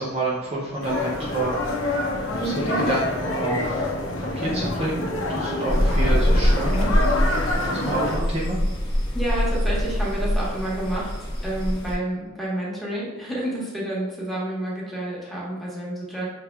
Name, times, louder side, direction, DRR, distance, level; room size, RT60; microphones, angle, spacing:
voice 1, 0.0-1.6 2.3-7.0 7.6-8.6, right 2 dB, 30° right, -5 dB, 0.5 m, -28 dB
sound 1, 0.8-8.2, left 1 dB, 75° left, 0.7 m, -27 dB
sound 2, 5.7-11.9, equal, 20° left, 1.0 m, -23 dB
voice 2, 9.1-11.1 11.4-16.3, right 1 dB, ahead, -6 dB, 1.1 m, -29 dB
5.7 x 3.4 x 2.2 m, 1.1 s
head